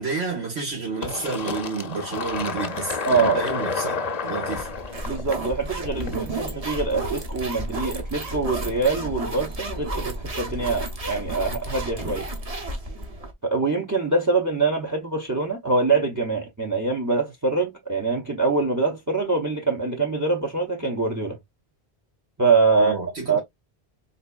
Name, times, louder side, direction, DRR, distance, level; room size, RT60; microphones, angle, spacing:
voice 1, 0.0-4.0 4.2-4.7 22.8-23.4, right 4 dB, 85° right, 2.0 m, -30 dB
Fill (with liquid), 1.0-6.4, left 4 dB, 45° left, 0.7 m, -30 dB
voice 2, 3.1-3.5 5.0-12.3 13.4-21.4 22.4-22.9 23.3-23.4, right 3 dB, 20° right, 0.6 m, -24 dB
sound 1, 4.5-13.3, right 1 dB, 35° right, 1.0 m, -32 dB
4.1 x 3.0 x 2.3 m
omnidirectional pair, 1.1 m